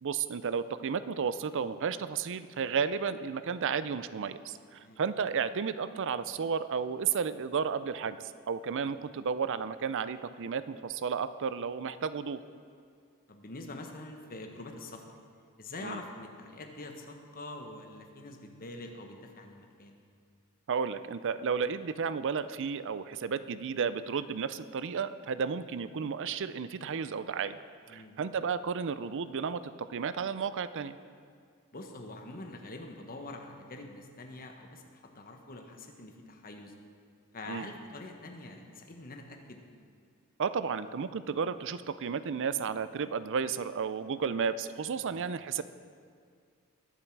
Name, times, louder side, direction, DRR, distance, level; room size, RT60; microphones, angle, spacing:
voice 1, 0.0-12.4 15.8-16.0 20.7-31.0 37.5-37.7 40.4-45.6, right 6 dB, 55° right, 14 dB, 0.5 m, -33 dB
voice 2, 13.3-15.2 15.6-20.0 27.9-28.2 31.7-36.7 37.3-39.6 45.0-45.2, left 2 dB, 40° left, 3 dB, 1.2 m, -45 dB
20.5 x 7.4 x 4.6 m, 2.2 s
head